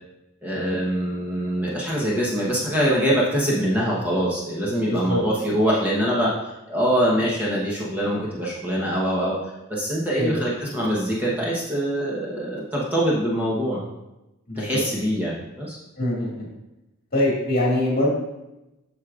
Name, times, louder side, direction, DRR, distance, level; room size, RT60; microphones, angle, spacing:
voice 1, 0.4-9.4 9.7-13.9 14.6-15.8, equal, 10° right, -6 dB, 1.0 m, -24 dB
voice 2, 4.8-5.2 10.2-10.5 14.5-14.8 16.0-16.4 17.1-18.1, left 1 dB, 40° left, -4 dB, 2.1 m, -23 dB
8.2 x 6.3 x 2.5 m, 0.96 s
head